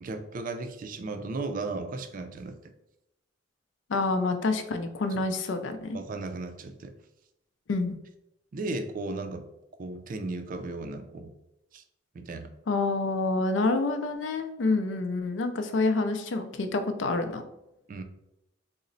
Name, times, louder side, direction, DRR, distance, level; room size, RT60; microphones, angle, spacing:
voice 1, 0.0-2.7 5.1-5.2 5.9-6.9 8.5-9.5 9.8-11.3 11.7-11.8 12.1-12.5 17.9-18.0, right 3 dB, 45° right, 8 dB, 0.4 m, -35 dB
voice 2, 3.9-6.0 7.7-8.0 12.7-17.4, left 3 dB, 80° left, 8 dB, 0.4 m, -27 dB
3.9 x 2.0 x 3.9 m, 0.87 s
head